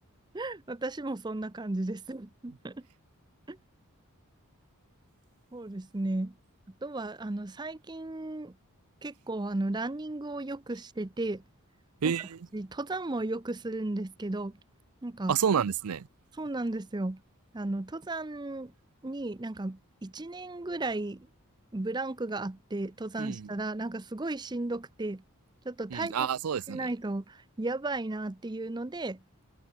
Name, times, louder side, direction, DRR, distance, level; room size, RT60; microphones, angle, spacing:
voice 1, 0.3-2.8 3.5-3.6 5.5-6.3 6.8-8.5 9.0-11.4 12.0-12.1 12.5-14.5 15.0-15.3 16.4-17.2 17.5-18.7 19.0-21.3 21.7-25.2 25.6-26.3 26.7-29.2, right 2 dB, 20° right, 0.5 m, -34 dB
voice 2, 12.0-12.5 15.3-16.1 23.2-23.5 25.9-26.9, right 7 dB, 85° right, 0.5 m, -29 dB
head